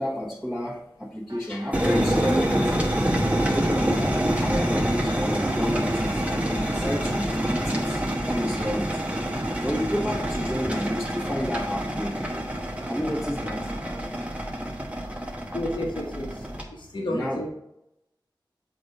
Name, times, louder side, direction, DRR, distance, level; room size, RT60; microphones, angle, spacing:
voice 1, 0.0-2.7 3.5-9.0 9.6-12.2 12.8-13.6 17.1-17.5, equal, 5° left, -9 dB, 1.3 m, -30 dB
sound 1, 1.3-14.1, right 1 dB, 40° right, 1.3 m, -46 dB
sound 2, 1.7-16.6, right 1 dB, 15° right, 1.0 m, -27 dB
voice 2, 15.5-16.3 16.9-17.5, left 1 dB, 75° left, 0 dB, 1.2 m, -30 dB
7.7 x 2.6 x 5.3 m, 0.82 s
wide cardioid pair, 60°, 8 cm